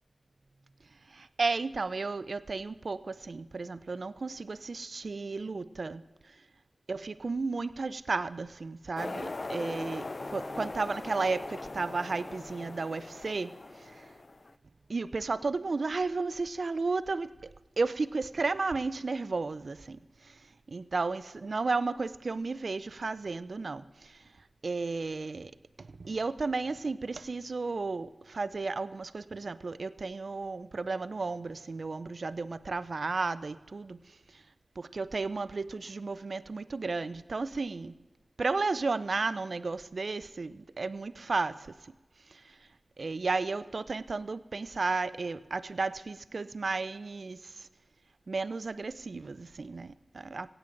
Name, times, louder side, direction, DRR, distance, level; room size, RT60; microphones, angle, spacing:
voice 1, 1.1-6.0 6.9-14.1 14.9-17.5 17.8-20.4 20.7-24.3 24.6-25.5 25.8-34.4 34.8-38.0 38.4-41.9 42.3-42.6 43.0-47.7 48.3-50.5, right 3 dB, 75° right, 0.4 m, -33 dB
sound 1, 9.0-14.5, left 2 dB, 55° left, 0.3 m, -40 dB
sound 2, 10.2-16.5, right 2 dB, 35° right, 1.3 m, -58 dB
22.0 x 8.9 x 3.8 m
cardioid pair, 45°, 0 cm